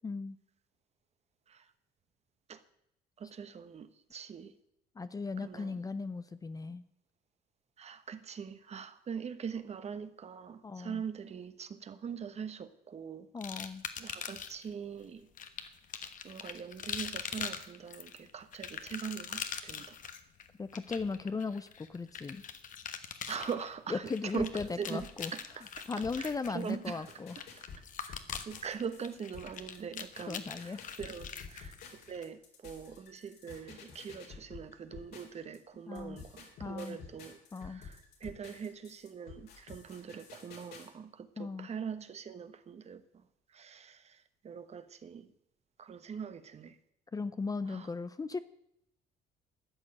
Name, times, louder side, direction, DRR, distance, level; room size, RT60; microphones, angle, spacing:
voice 1, 0.0-0.4 5.0-6.8 10.6-11.0 13.3-13.8 20.6-22.4 23.3-23.5 23.9-25.3 25.9-27.4 30.3-30.8 35.9-36.2 36.6-37.0 37.5-37.8 41.4-41.7 47.1-48.4, left 4 dB, 20° left, 0.6 m, -37 dB
voice 2, 3.2-4.5 5.4-5.8 7.8-13.3 14.0-15.3 16.2-20.0 23.3-25.8 26.2-26.3 26.5-27.1 28.0-31.8 32.1-43.0 43.5-45.3 45.8-46.8 47.7-47.9, right 7 dB, 40° right, 1.1 m, -42 dB
sound 1, 13.4-14.7 15.4-32.2, left 7 dB, 50° left, 1.2 m, -43 dB
sound 2, 24.4-35.6 35.9-40.9, left 5 dB, 70° left, 3.8 m, -51 dB
13.0 x 6.5 x 9.9 m
cardioid pair, 110°, 17 cm